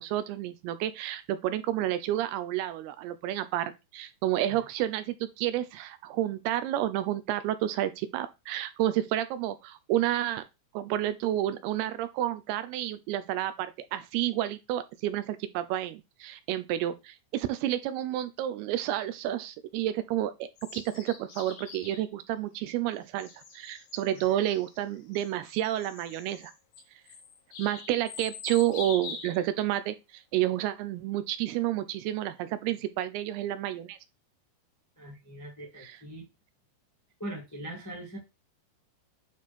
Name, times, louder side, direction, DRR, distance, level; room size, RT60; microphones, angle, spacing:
voice 1, 0.0-10.4 10.7-23.3 23.5-26.5 27.6-34.0 35.8-36.0, right 13 dB, 80° right, 2.5 m, -30 dB
sound 1, 20.6-22.1 23.0-29.5, left 6 dB, 70° left, 2.8 m, -45 dB
voice 2, 35.0-36.2 37.2-38.2, right 1 dB, 15° left, 0.6 m, -41 dB
9.3 x 3.2 x 4.2 m
omnidirectional pair, 4.8 m